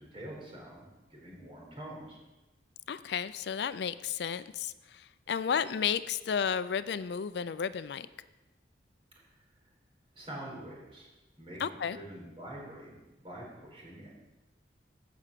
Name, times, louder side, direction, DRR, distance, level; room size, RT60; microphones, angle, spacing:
voice 1, 0.0-2.2 9.2-9.4 10.1-11.1 11.4-14.1, right 1 dB, 30° right, -2 dB, 4.1 m, -46 dB
voice 2, 2.9-8.1 11.6-12.0, left 7 dB, 65° left, 15 dB, 0.4 m, -33 dB
16.0 x 6.0 x 6.7 m, 1.1 s
head